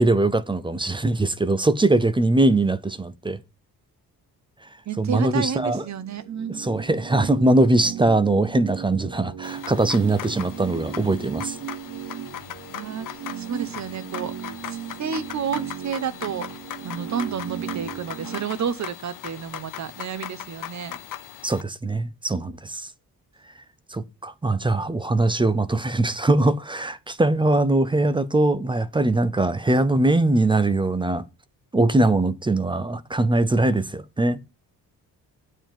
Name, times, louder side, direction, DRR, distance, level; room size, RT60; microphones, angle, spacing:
voice 1, 0.0-3.4 5.0-5.8 6.5-11.6 21.4-22.9 23.9-31.2 31.7-34.4, right 2 dB, 15° right, 0.5 m, -21 dB
voice 2, 4.9-6.7 12.7-13.1 13.4-14.3 14.7-16.5 16.8-21.0, right 7 dB, 45° right, 0.9 m, -30 dB
sound 1, 6.0-18.4, right 11 dB, 80° right, 1.0 m, -36 dB
sound 2, 9.4-21.6, left 11 dB, 55° left, 0.6 m, -39 dB
8.9 x 4.6 x 7.6 m
wide cardioid pair, 160°, 38 cm